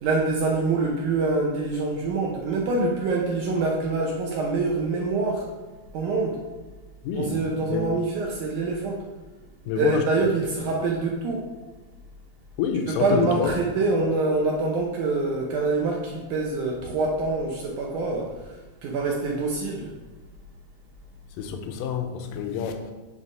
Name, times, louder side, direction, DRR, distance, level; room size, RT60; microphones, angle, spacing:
voice 1, 0.0-5.5 5.9-6.4 7.1-9.0 9.7-11.4 12.9-19.9, right 3 dB, 75° right, -1 dB, 1.9 m, -25 dB
voice 2, 7.0-7.4 7.7-7.9 9.7-10.3 12.6-13.5 21.4-22.9, left 7 dB, 80° left, 4 dB, 2.1 m, -27 dB
7.4 x 3.4 x 5.4 m, 1.2 s
omnidirectional pair, 4.2 m